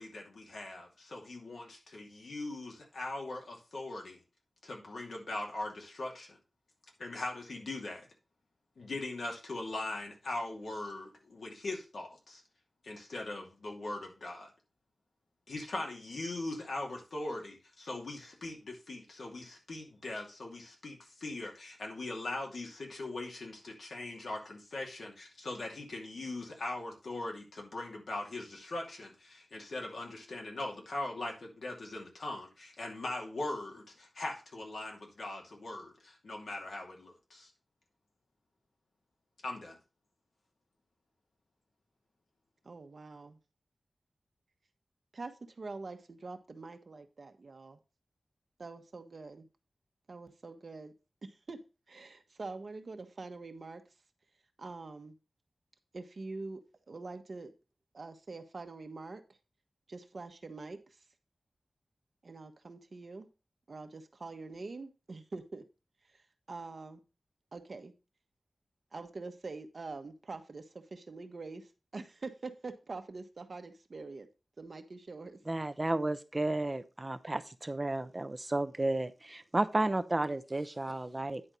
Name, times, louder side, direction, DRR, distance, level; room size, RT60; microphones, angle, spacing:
voice 1, 0.0-4.2 4.6-6.4 7.0-8.1 8.8-12.4 12.8-14.5 15.5-37.5 39.4-39.8, left 2 dB, 85° left, 0 dB, 2.5 m, -40 dB
voice 2, 42.6-43.4 45.1-47.8 48.6-49.5 50.1-50.9 51.2-51.6 51.9-53.8 54.6-55.1 55.9-56.6 56.9-57.5 57.9-59.2 59.9-60.8 62.2-63.3 63.7-65.6 66.1-67.0 67.5-67.9 68.9-74.3 74.6-75.4, right 3 dB, 65° right, 7 dB, 1.2 m, -45 dB
voice 3, 75.5-81.4, right 2 dB, 30° right, 11 dB, 0.7 m, -32 dB
9.8 x 4.4 x 5.2 m, 0.31 s
wide cardioid pair, 60°, 0 cm